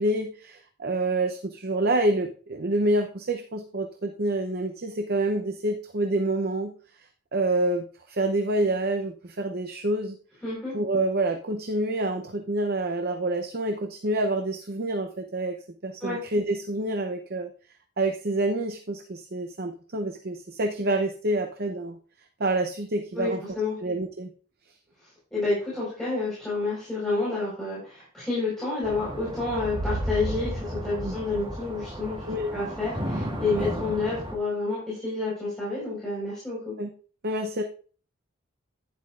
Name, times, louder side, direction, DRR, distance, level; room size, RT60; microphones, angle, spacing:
voice 1, 0.0-6.7 7.3-10.2 10.7-15.6 15.8-17.5 18.0-22.0 22.4-23.4 23.8-24.3 31.0-31.2 32.3-32.5 36.8-36.9 37.2-37.6, right 2 dB, 45° right, 5 dB, 0.7 m, -27 dB
voice 2, 10.4-10.7 16.0-16.2 23.1-23.8 25.3-32.2 32.5-36.7, left 3 dB, ahead, -9 dB, 4.6 m, -29 dB
sound 1, 28.8-34.4, right 1 dB, 25° right, 1.6 m, -33 dB
11.0 x 9.8 x 2.5 m, 0.40 s
head